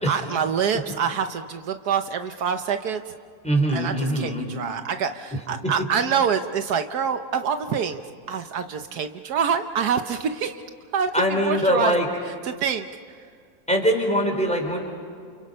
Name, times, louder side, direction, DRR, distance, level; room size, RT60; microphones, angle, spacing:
voice 1, 0.1-3.0 3.7-8.0 8.3-10.6 10.9-11.1 11.4-11.9 12.4-12.9, right 7 dB, 75° right, 8 dB, 1.4 m, -26 dB
voice 2, 3.4-4.5 5.6-5.7 11.1-12.1 13.7-14.8, equal, 5° left, 1 dB, 4.4 m, -22 dB
29.5 x 28.5 x 5.6 m, 2.2 s
omnidirectional pair, 1.7 m